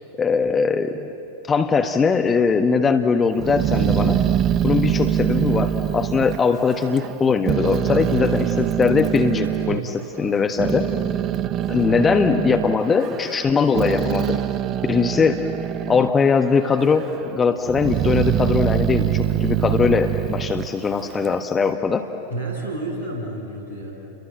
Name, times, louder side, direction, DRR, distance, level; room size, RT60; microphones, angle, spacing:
voice 1, 0.2-1.1 1.5-4.2 4.6-9.8 10.2-10.9 11.7-14.4 14.9-15.4 15.9-22.0, left 5 dB, 20° left, 6 dB, 1.2 m, -20 dB
Growling, 3.4-7.2 7.5-9.8 10.3-16.2 16.5-17.2 17.7-21.4, right 11 dB, 30° right, 0.6 m, -24 dB
voice 2, 22.3-23.9, right 2 dB, 80° left, -1 dB, 7.6 m, -30 dB
30.0 x 22.5 x 7.9 m, 3.0 s
figure-of-eight pair, 90°, 0 cm